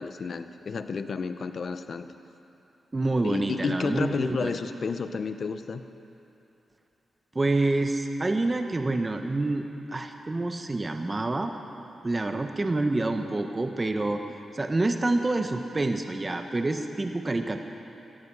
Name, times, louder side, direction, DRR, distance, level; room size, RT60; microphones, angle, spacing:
voice 1, 0.0-2.1 3.2-5.8, left 5 dB, 60° left, 10 dB, 0.8 m, -31 dB
voice 2, 2.9-4.5 7.3-11.5 12.0-14.2 14.5-17.6, right 2 dB, 30° right, 5 dB, 1.1 m, -27 dB
18.0 x 13.5 x 5.6 m, 2.9 s
supercardioid pair, 50°, 0 cm